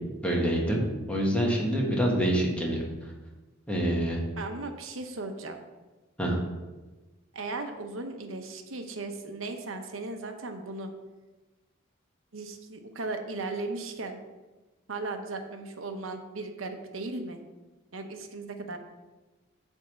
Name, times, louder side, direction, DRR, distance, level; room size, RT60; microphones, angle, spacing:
voice 1, 0.2-2.8 3.7-4.2 6.2-6.4, right 1 dB, 5° left, -2 dB, 1.5 m, -26 dB
voice 2, 4.4-5.6 7.3-10.9 12.3-14.2 14.9-17.4 17.9-18.8, right 3 dB, 80° right, 5 dB, 0.9 m, -37 dB
8.2 x 3.6 x 6.3 m, 1.2 s
head